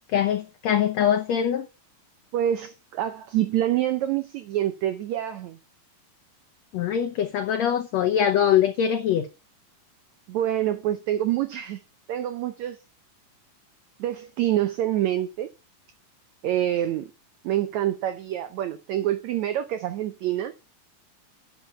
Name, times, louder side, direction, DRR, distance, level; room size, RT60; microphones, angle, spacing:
voice 1, 0.1-1.7 6.7-9.3, left 9 dB, 90° left, 1.5 m, -23 dB
voice 2, 2.3-5.6 10.3-11.8 12.1-12.8 14.0-15.5 16.4-17.1 17.4-20.5, right 12 dB, 85° right, 1.6 m, -26 dB
11.5 x 6.1 x 5.6 m
omnidirectional pair, 4.2 m